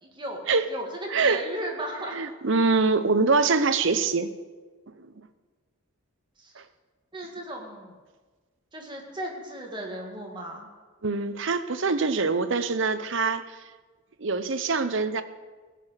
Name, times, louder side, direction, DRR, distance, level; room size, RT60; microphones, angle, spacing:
voice 1, 0.0-2.2 6.4-6.5 7.1-8.0 8.7-10.7, right 1 dB, 20° right, 0 dB, 1.8 m, -36 dB
voice 2, 1.1-1.4 2.1-4.3 5.0-5.1 6.6-6.7 11.0-13.6 14.2-15.2, right 4 dB, 55° right, 11 dB, 0.7 m, -24 dB
16.0 x 5.8 x 8.1 m, 1.3 s
head